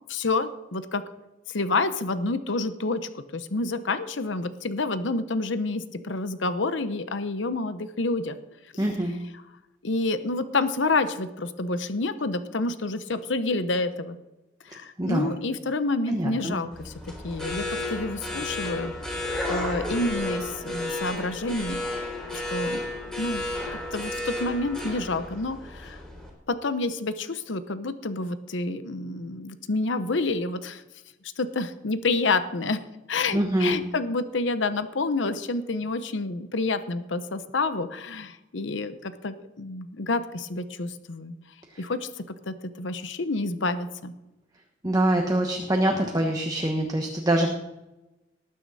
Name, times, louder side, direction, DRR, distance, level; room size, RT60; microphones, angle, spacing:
voice 1, 0.1-1.0 1.5-8.4 9.8-14.2 14.6-16.9 17.2-19.2 19.5-21.8 22.3-22.8 23.2-23.4 23.9-26.0 26.5-30.8 31.4-32.8 33.1-41.3 41.8-44.1, left 3 dB, 75° left, 11 dB, 0.8 m, -28 dB
voice 2, 8.8-9.2 15.0-15.3 16.1-16.6 33.3-33.8 41.7-41.8 44.8-47.5, right 1 dB, 20° right, 2 dB, 1.2 m, -24 dB
sound 1, 16.7-26.3, left 1 dB, 5° left, 3.8 m, -32 dB
19.0 x 9.3 x 4.1 m, 0.98 s
head